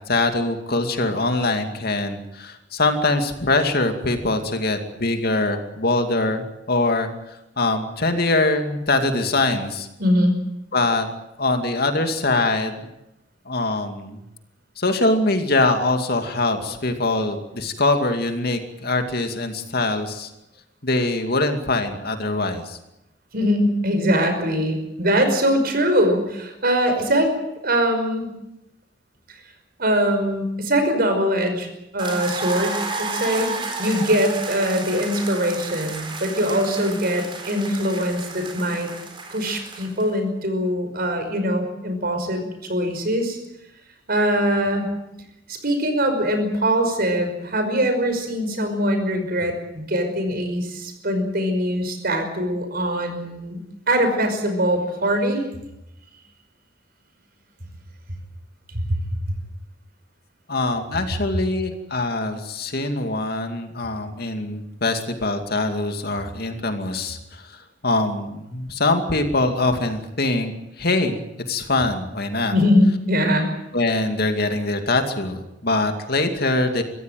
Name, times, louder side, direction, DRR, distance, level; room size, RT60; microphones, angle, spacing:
voice 1, 0.1-7.1 7.6-9.9 10.7-11.1 11.4-12.8 13.5-14.2 14.8-20.3 20.8-22.8 60.5-67.6 67.8-71.2 71.5-72.5 73.7-76.8, left 2 dB, 55° left, 6 dB, 2.5 m, -23 dB
voice 2, 10.0-10.4 23.3-27.3 27.6-28.3 29.3-29.4 29.8-31.7 31.9-38.9 39.3-42.4 42.7-43.4 44.1-44.9 45.5-53.6 53.9-55.4 58.7-59.0 72.5-73.5, equal, 55° right, 6 dB, 5.4 m, -22 dB
sound 1, 32.0-40.1, right 3 dB, 30° right, 3.9 m, -32 dB
24.5 x 15.5 x 9.3 m, 0.89 s
head